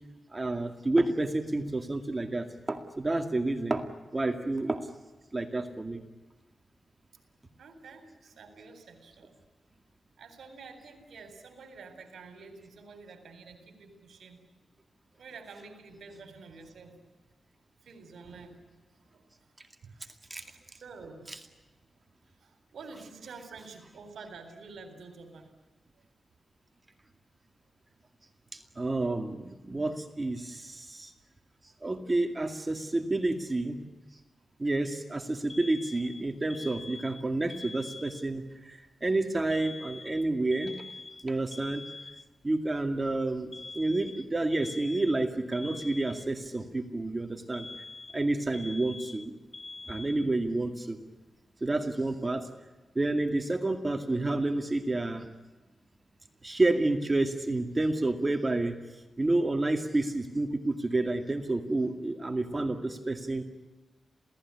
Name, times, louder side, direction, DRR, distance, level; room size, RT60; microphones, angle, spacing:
voice 1, 0.3-3.8 4.1-4.8 5.3-6.0 20.3-20.4 28.5-31.1 31.8-33.8 34.6-40.7 41.2-41.8 42.4-47.7 48.1-49.3 49.9-51.0 51.6-52.5 53.0-55.3 56.4-58.7 59.2-63.4, right 2 dB, 25° right, 6 dB, 2.2 m, -29 dB
voice 2, 7.6-9.4 10.2-14.4 15.2-17.0 17.8-18.6 18.9-19.5 19.8-20.1 20.4-21.5 21.9-22.0 22.4-25.5 26.0-26.1 62.5-62.8, right 4 dB, 80° right, 8 dB, 4.0 m, -49 dB
Alarm, 35.5-38.5 39.5-42.5 43.5-46.5 47.5-50.5, left 3 dB, 30° left, 1.1 m, -45 dB
28.0 x 18.0 x 9.9 m, 1.2 s
cardioid pair, 90°, 0 cm